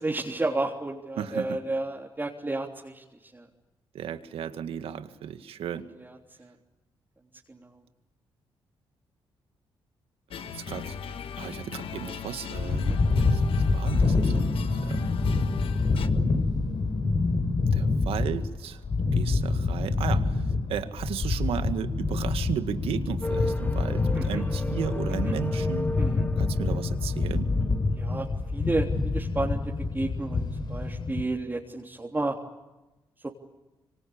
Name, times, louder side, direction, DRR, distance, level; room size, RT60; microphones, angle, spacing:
voice 1, 0.0-3.5 6.4-6.5 7.5-7.7 12.8-13.0 24.2-24.4 25.3-25.4 26.0-26.3 27.9-32.4 33.2-33.3, right 2 dB, 20° right, -1 dB, 3.5 m, -32 dB
voice 2, 1.2-1.6 3.9-5.9 10.5-15.6 17.7-18.8 19.1-25.9 26.4-27.5, right 9 dB, 80° right, 9 dB, 1.9 m, -35 dB
sound 1, 10.3-16.1, left 7 dB, 70° left, 1.8 m, -39 dB
sound 2, 12.5-31.2, left 3 dB, 50° left, 4.3 m, -26 dB
sound 3, 23.2-28.3, left 1 dB, 15° left, 1.3 m, -36 dB
25.5 x 25.5 x 8.8 m, 1.1 s
cardioid pair, 65°, 10 cm